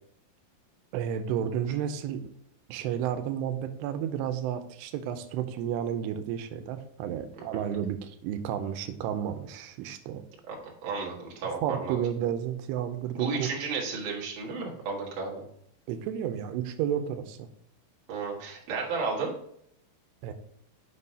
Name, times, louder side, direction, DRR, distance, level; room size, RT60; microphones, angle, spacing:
voice 1, 0.9-2.3 2.7-10.2 11.6-13.5 15.9-17.5 20.2-20.3, right 9 dB, 90° right, 9 dB, 2.7 m, -32 dB
voice 2, 10.5-12.0 13.1-15.4 18.1-19.3, right 4 dB, 50° right, -2 dB, 2.4 m, -33 dB
7.5 x 6.2 x 2.7 m, 0.70 s
omnidirectional pair, 4.7 m